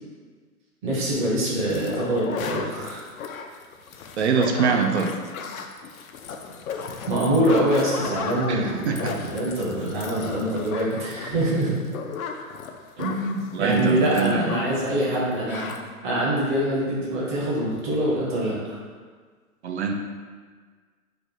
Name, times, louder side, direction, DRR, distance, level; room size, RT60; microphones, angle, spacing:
voice 1, 0.8-3.0 7.1-11.7 13.0-15.7 16.0-18.8, right 1 dB, 35° right, -4 dB, 1.0 m, -24 dB
sound 1, 1.7-14.9 15.1-15.2 15.4-15.8, left 5 dB, 70° left, 0.5 m, -34 dB
voice 2, 4.2-5.1 8.5-9.1 13.5-14.5 19.6-19.9, right 5 dB, 50° right, 4 dB, 0.5 m, -24 dB
3.3 x 2.5 x 4.0 m, 1.6 s
hypercardioid pair, 135°, 44 cm